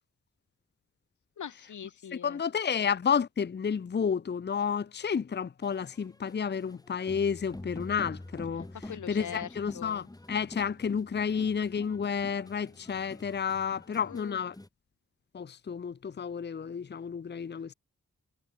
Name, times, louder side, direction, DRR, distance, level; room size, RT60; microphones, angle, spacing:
voice 1, 1.4-2.4 8.7-10.1 14.0-14.4, left 8 dB, 90° left, 2.4 m, -42 dB
voice 2, 2.2-8.7 9.1-14.5 15.3-17.7, left 6 dB, 35° left, 0.8 m, -31 dB
sound 1, 5.6-14.7, left 1 dB, 15° left, 7.6 m, -47 dB
wide cardioid pair, 160°, 29 cm